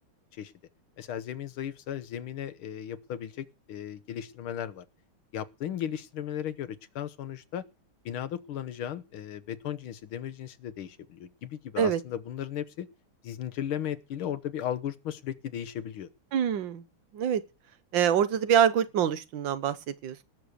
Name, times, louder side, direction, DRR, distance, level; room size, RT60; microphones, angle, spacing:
voice 1, 1.0-4.9 5.3-7.7 8.1-12.9 13.2-16.1, left 10 dB, 70° left, 1.8 m, -36 dB
voice 2, 16.3-16.8 17.1-17.4 17.9-20.2, right 9 dB, 65° right, 1.6 m, -25 dB
18.5 x 6.8 x 6.6 m
omnidirectional pair, 2.4 m